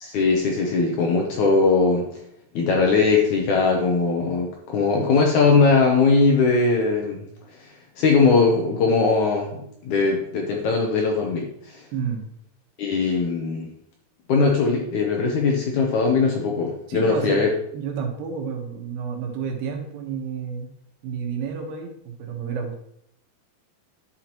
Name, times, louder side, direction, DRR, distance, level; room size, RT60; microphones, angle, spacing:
voice 1, 0.0-2.1 2.6-7.2 8.0-11.8 12.8-13.7 14.3-17.5, left 4 dB, 70° left, 0 dB, 1.9 m, -20 dB
voice 2, 11.9-12.2 16.9-17.4 17.7-20.7 21.0-22.8, right 6 dB, 90° right, 2 dB, 3.3 m, -30 dB
11.5 x 5.8 x 3.0 m, 0.73 s
omnidirectional pair, 4.5 m